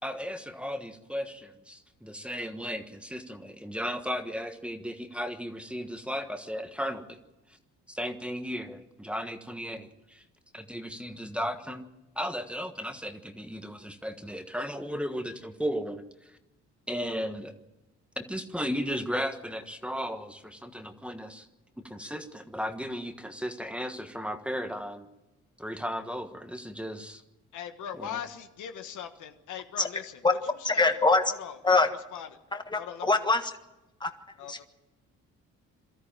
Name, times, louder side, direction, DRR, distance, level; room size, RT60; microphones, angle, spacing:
voice 1, 0.0-7.2 7.9-10.2 10.5-11.9 12.1-16.0 16.9-17.5 18.2-21.5 21.8-25.1 25.6-27.2 28.0-28.2, equal, 5° right, 7 dB, 1.4 m, -35 dB
voice 2, 27.5-30.1 30.6-31.0 31.3-31.8 32.1-32.3 32.8-33.2 34.4-34.6, left 9 dB, 80° left, 7 dB, 1.5 m, -40 dB
voice 3, 30.6-31.2 31.6-31.9 32.5-33.5 34.0-34.1 34.5-34.6, left 3 dB, 15° left, 7 dB, 1.6 m, -23 dB
23.0 x 13.5 x 9.0 m, 1.0 s
cardioid pair, 90°, 30 cm